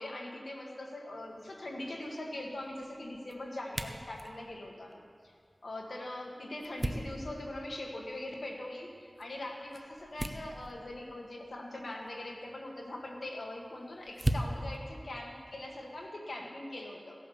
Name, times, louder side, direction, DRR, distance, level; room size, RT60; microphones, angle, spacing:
voice 1, 0.0-5.3 5.6-17.2, left 1 dB, 90° left, 0 dB, 1.9 m, -42 dB
sound 1, 1.2-16.1, right 1 dB, 30° right, 0.8 m, -42 dB
16.5 x 8.6 x 6.7 m, 2.2 s
wide cardioid pair, 65°, 0 cm